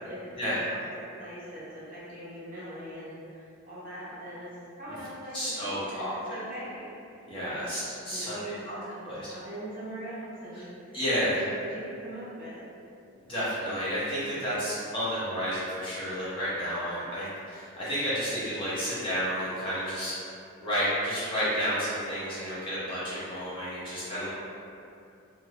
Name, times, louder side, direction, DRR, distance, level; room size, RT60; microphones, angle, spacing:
voice 1, 0.0-4.5 4.8-7.7 8.1-11.0 11.4-12.7, right 1 dB, 40° right, -11 dB, 1.0 m, -42 dB
voice 2, 5.3-6.4 7.3-8.8 9.1-9.3 10.9-11.4 13.3-20.1 20.6-24.3, equal, 25° left, -11 dB, 0.6 m, -31 dB
2.5 x 2.3 x 3.2 m, 2.6 s
head